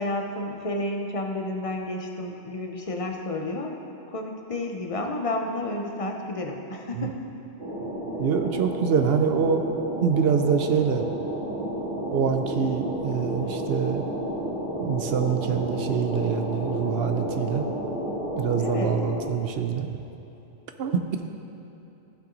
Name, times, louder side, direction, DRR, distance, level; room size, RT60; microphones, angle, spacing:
voice 1, 0.0-3.7 4.1-7.2 18.6-19.0, left 1 dB, 35° left, 2 dB, 0.7 m, -31 dB
sound 1, 7.6-19.2, right 1 dB, 45° right, 2.0 m, -31 dB
voice 2, 8.2-9.6 10.0-11.1 12.1-14.1 14.8-17.7 18.4-19.9 20.8-21.0, right 7 dB, 65° right, 6 dB, 0.8 m, -25 dB
14.5 x 5.9 x 3.9 m, 3.0 s
omnidirectional pair, 1.2 m